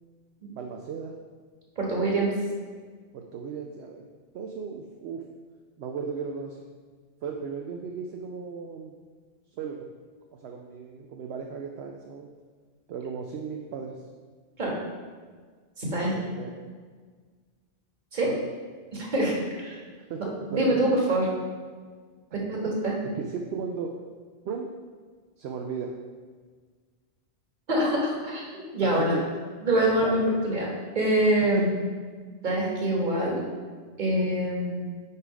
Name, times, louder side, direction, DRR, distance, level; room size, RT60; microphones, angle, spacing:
voice 1, 0.5-1.2 3.1-4.0 4.3-5.2 5.8-6.6 7.2-8.9 9.5-9.9 10.4-12.3 12.9-14.0 16.1-16.5 18.2-18.4 20.1-20.8 23.2-23.9 24.4-24.7 25.4-26.0 28.8-29.2 30.0-30.3 31.5-31.6, right 6 dB, 70° right, 2 dB, 0.8 m, -35 dB
voice 2, 1.8-2.3 14.6-14.8 15.8-16.1 18.1-18.3 18.9-19.8 20.6-21.3 22.3-22.9 27.7-29.2 29.6-30.7 30.9-31.7 32.4-33.4 34.0-34.9, right 1 dB, 45° right, -2 dB, 1.5 m, -25 dB
5.6 x 4.7 x 5.0 m, 1.6 s
omnidirectional pair, 1.1 m